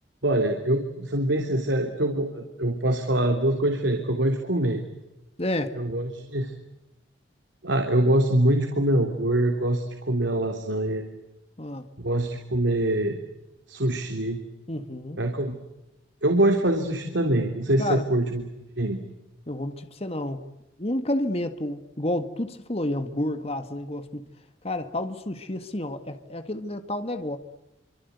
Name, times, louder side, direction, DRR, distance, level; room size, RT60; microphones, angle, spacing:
voice 1, 0.2-4.8 5.8-6.5 7.6-11.0 12.0-13.2 13.7-14.4 15.2-15.6 16.2-18.4 18.8-19.0, right 1 dB, 75° right, 4 dB, 3.3 m, -24 dB
voice 2, 5.4-5.8 11.6-11.9 14.7-15.2 17.8-18.1 19.5-20.5 20.8-24.3 24.6-27.4, left 1 dB, 30° left, 8 dB, 1.8 m, -30 dB
28.5 x 25.5 x 8.2 m, 0.96 s
head